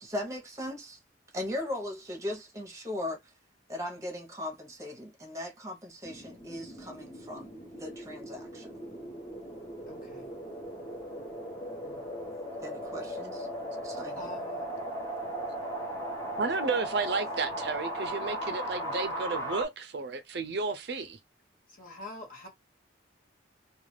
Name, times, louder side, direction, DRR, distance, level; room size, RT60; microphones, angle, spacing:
voice 1, 0.0-1.0 1.3-3.2 3.7-7.5 7.8-8.7 12.6-13.5 13.8-14.4, left 1 dB, 15° right, 0.9 m, -38 dB
sound 1, 6.0-19.7, right 1 dB, 15° left, 0.9 m, -37 dB
voice 2, 9.9-10.3 11.8-12.0 14.1-14.7 21.7-22.5, left 1 dB, 45° left, 1.3 m, -46 dB
voice 3, 16.4-21.2, right 4 dB, 60° right, 0.5 m, -32 dB
2.4 x 2.4 x 3.2 m
head